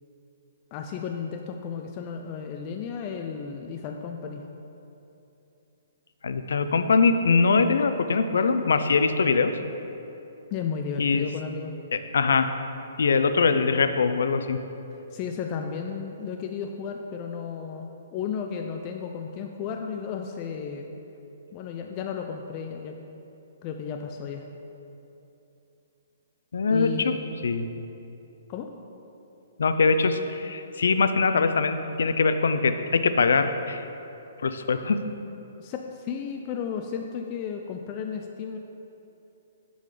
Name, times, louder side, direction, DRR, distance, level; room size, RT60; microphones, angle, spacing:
voice 1, 0.7-4.4 10.5-11.7 15.1-20.9 21.5-23.0 23.6-24.4 26.7-27.2 28.5-28.7 35.6-38.6, left 6 dB, 25° left, 3 dB, 0.4 m, -33 dB
voice 2, 6.2-9.5 11.0-11.3 11.9-12.5 13.0-14.6 26.5-27.1 27.4-27.7 29.6-33.9 34.4-35.0, left 4 dB, 85° left, 9 dB, 0.5 m, -22 dB
10.5 x 3.9 x 4.9 m, 2.9 s
hypercardioid pair, 165°, 0 cm